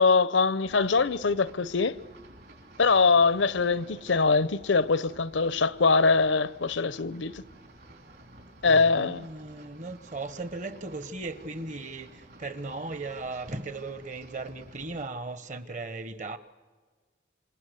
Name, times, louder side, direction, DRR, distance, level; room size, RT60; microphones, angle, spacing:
voice 1, 0.0-2.0 2.8-7.4 8.6-9.3, left 4 dB, 80° left, 0.7 m, -23 dB
sound 1, 0.6-15.1, right 1 dB, 60° right, 4.5 m, -52 dB
voice 2, 8.6-16.4, right 3 dB, 40° right, 1.2 m, -37 dB
27.0 x 27.0 x 8.1 m
head